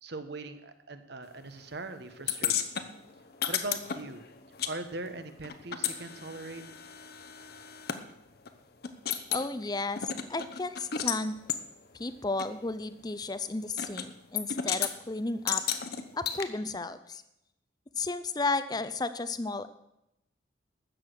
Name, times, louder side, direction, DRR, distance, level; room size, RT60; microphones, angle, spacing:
voice 1, 0.0-2.9 3.5-4.2 4.6-6.6, right 2 dB, 60° right, 9 dB, 1.1 m, -40 dB
sound 1, 2.3-4.7 5.0-8.0 8.5-8.6 8.8-9.5 10.0-11.2 11.5-11.6 12.4-12.5 13.8-14.1 14.4-14.9 15.5-16.4, left 9 dB, 55° left, 0.9 m, -33 dB
voice 2, 9.3-11.4 12.0-15.6 16.1-17.2 18.0-19.7, left 3 dB, 20° left, 12 dB, 0.6 m, -33 dB
13.0 x 8.0 x 6.5 m, 0.87 s
head